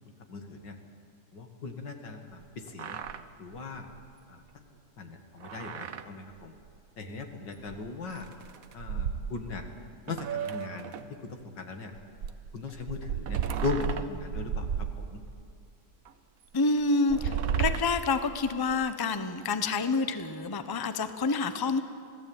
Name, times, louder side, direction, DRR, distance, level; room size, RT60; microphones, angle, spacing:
voice 1, 0.3-0.8 1.3-3.0 3.4-3.9 4.3-6.5 7.0-8.3 8.7-9.6 10.1-10.9 11.2-11.9 12.5-15.2, left 3 dB, 85° left, 5 dB, 2.7 m, -38 dB
sound 1, 2.4-2.5 2.7-3.2 3.6-3.7 3.9-4.1 5.4-6.1 6.4-6.5 7.7-7.8 8.1-9.7 10.1-11.1 11.9-15.5 16.1-16.2 16.9-18.9, right 8 dB, 60° right, 1.2 m, -33 dB
voice 2, 16.5-21.8, left 3 dB, 20° left, 10 dB, 0.7 m, -28 dB
26.0 x 17.5 x 8.9 m, 2.5 s
omnidirectional pair, 1.9 m